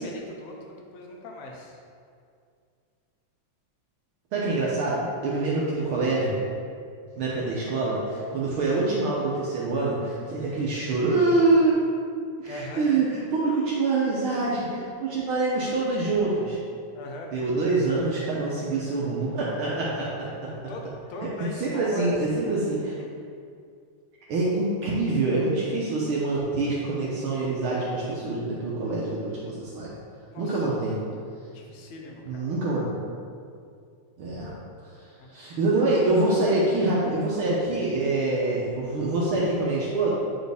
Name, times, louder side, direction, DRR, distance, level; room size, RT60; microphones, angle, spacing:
voice 1, 0.0-1.8 12.5-12.8 16.9-17.3 20.7-22.5 23.0-23.1 30.3-30.6 31.5-32.4 35.2-35.3, left 1 dB, 70° left, 0 dB, 1.8 m, -39 dB
voice 2, 4.3-6.4 7.2-11.7 12.4-16.6 17.3-20.5 21.6-22.9 24.3-29.9 30.4-31.0 32.3-33.0 34.2-34.5 35.3-40.1, right 2 dB, 75° right, -5 dB, 1.2 m, -25 dB
9.0 x 4.1 x 3.5 m, 2.3 s
omnidirectional pair, 3.4 m